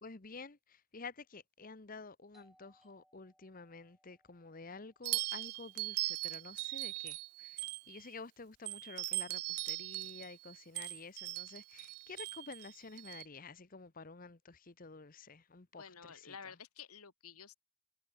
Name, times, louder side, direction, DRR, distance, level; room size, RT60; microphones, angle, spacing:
voice 1, 0.0-16.5, left 4 dB, 40° left, 1.0 m, -51 dB
Doorbell, 2.3-7.7, equal, ahead, 3.1 m, -74 dB
sound 1, 5.0-8.1 8.7-13.2, right 21 dB, 85° right, 0.3 m, -40 dB
voice 2, 15.8-17.5, left 6 dB, 90° left, 2.0 m, -51 dB
head